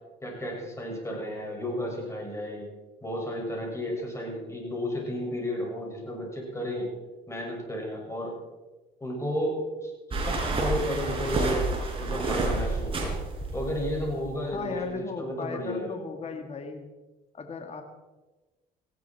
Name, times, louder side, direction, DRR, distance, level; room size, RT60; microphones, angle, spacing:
voice 1, 0.2-2.7 3.0-6.9 7.3-8.4 9.0-9.9 10.3-11.7 12.0-13.1 13.5-16.0, equal, 15° left, -1 dB, 6.9 m, -33 dB
sound 1, 10.1-14.5, right 2 dB, 30° right, 5.0 m, -29 dB
voice 2, 14.5-16.9 17.3-17.8, left 5 dB, 40° left, 5 dB, 1.9 m, -36 dB
19.0 x 15.5 x 4.7 m, 1.2 s
cardioid pair, 110°, 17 cm